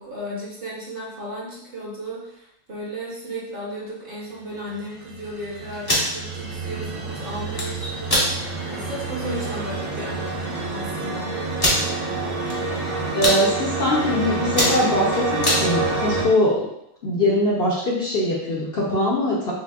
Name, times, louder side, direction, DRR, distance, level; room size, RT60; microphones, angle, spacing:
voice 1, 0.0-10.3 10.7-11.4, equal, 45° right, -5 dB, 1.0 m, -34 dB
sound 1, 4.7-16.3, right 3 dB, 75° right, 1.2 m, -28 dB
sound 2, 5.7-6.1 7.3-7.7 8.1-8.3 8.8-8.9 9.2-9.5 10.3-10.4 10.5-10.6 11.6-11.8 12.5-12.8 13.0-13.4 14.0-14.1 14.4-15.6, left 1 dB, 25° left, 0.6 m, -21 dB
voice 2, 13.1-16.7 17.0-19.5, left 1 dB, 55° left, -5 dB, 0.7 m, -22 dB
5.8 x 2.1 x 2.3 m, 0.80 s
omnidirectional pair, 1.5 m